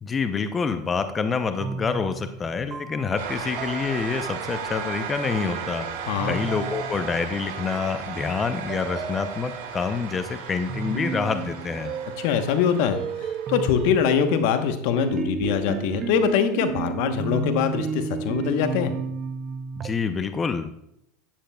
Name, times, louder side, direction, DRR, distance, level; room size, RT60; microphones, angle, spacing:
voice 1, 0.0-11.9 19.8-20.7, left 5 dB, 25° left, 9 dB, 0.6 m, -27 dB
sound 1, 1.6-5.5 6.2-7.7 8.7-9.9 10.7-12.6 12.9-19.9, right 6 dB, 35° right, 0.6 m, -33 dB
sound 2, 3.2-14.6, right 7 dB, 75° right, 2.6 m, -36 dB
voice 2, 6.1-6.4 12.2-13.0 13.5-18.9, left 7 dB, 65° left, 8 dB, 1.0 m, -23 dB
11.5 x 10.0 x 2.3 m, 0.77 s
hypercardioid pair, 95°, 0 cm